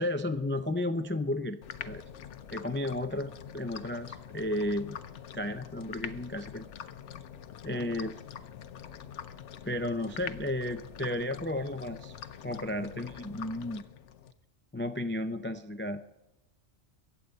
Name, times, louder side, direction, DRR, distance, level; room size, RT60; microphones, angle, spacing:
voice 1, 0.0-1.6 1.9-2.0 2.5-5.0 5.3-6.6 7.6-8.2 9.7-12.1 12.4-13.8 14.7-16.0, left 1 dB, 20° left, 9 dB, 0.3 m, -33 dB
sound 1, 1.6-14.3, left 9 dB, 85° left, 1.0 m, -45 dB
23.0 x 8.5 x 4.0 m, 0.96 s
omnidirectional pair, 1.2 m